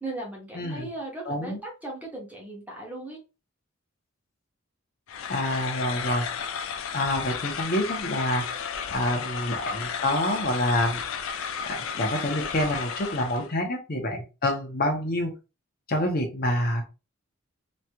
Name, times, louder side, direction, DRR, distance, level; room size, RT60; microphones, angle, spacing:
voice 1, 0.0-3.2, right 2 dB, 10° right, -2 dB, 1.0 m, -37 dB
voice 2, 0.5-0.9 1.2-1.6 5.3-6.2 6.9-8.4 8.9-11.0 11.6-15.3 15.9-16.8, left 1 dB, 45° left, 2 dB, 0.8 m, -27 dB
sound 1, 5.1-13.5, left 6 dB, 70° left, 0.4 m, -33 dB
3.1 x 2.9 x 2.3 m, 0.29 s
head